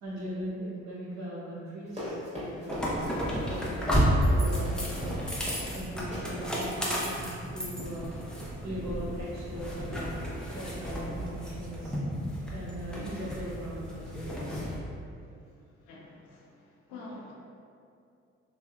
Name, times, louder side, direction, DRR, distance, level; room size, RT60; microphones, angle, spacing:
voice 1, 0.0-3.9 4.3-5.1 5.7-7.2 7.5-8.2 8.6-12.0 12.5-14.7, equal, 60° right, -8 dB, 1.1 m, -39 dB
Run, 1.9-5.8 6.1-6.3 6.6-6.9, left 1 dB, 20° right, 1.4 m, -40 dB
sound 1, 2.7-14.7, equal, ahead, 0.6 m, -32 dB
voice 2, 15.9-17.3, left 2 dB, 90° left, -3 dB, 0.5 m, -47 dB
2.7 x 2.3 x 2.3 m, 2.4 s
hypercardioid pair, 50°, 32 cm